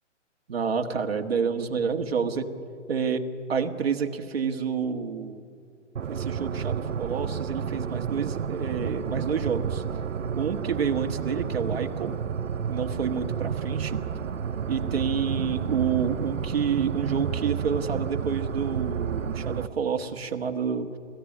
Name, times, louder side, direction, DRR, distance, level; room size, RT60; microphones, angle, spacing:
voice 1, 0.5-2.5 2.9-3.2 3.5-5.4 6.1-9.8 10.4-12.1 12.7-14.0 14.7-20.9, right 6 dB, 50° right, 5 dB, 1.7 m, -28 dB
sound 1, 6.0-19.7, right 7 dB, 80° right, 1.0 m, -31 dB
24.5 x 15.5 x 9.9 m, 2.5 s
hypercardioid pair, 170°, 37 cm